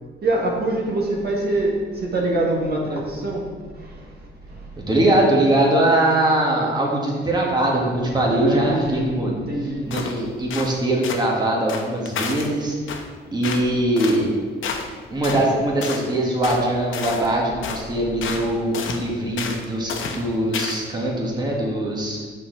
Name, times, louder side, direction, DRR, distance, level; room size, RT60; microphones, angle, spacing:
voice 1, 0.2-3.4 3.7-4.1 4.5-4.7 8.3-9.9, right 2 dB, 50° right, -3 dB, 1.6 m, -24 dB
voice 2, 4.9-9.5 9.9-12.8 13.3-14.3 15.1-22.2, right 1 dB, 20° right, -3 dB, 1.8 m, -21 dB
sound 1, 9.9-10.2 10.5-10.7 11.0-11.2 11.7-12.5 12.9-13.1 13.4-13.7 14.0-14.2 14.6-14.9 15.2-15.5 15.8-16.1 16.4-16.7 16.9-17.3 17.6-17.9 18.2-18.5 18.7-19.0 19.4-19.6 19.9-20.2 20.5-20.9, left 6 dB, 75° left, 0.8 m, -30 dB
5.9 x 4.5 x 5.9 m, 1.5 s
cardioid pair, 75°, 20 cm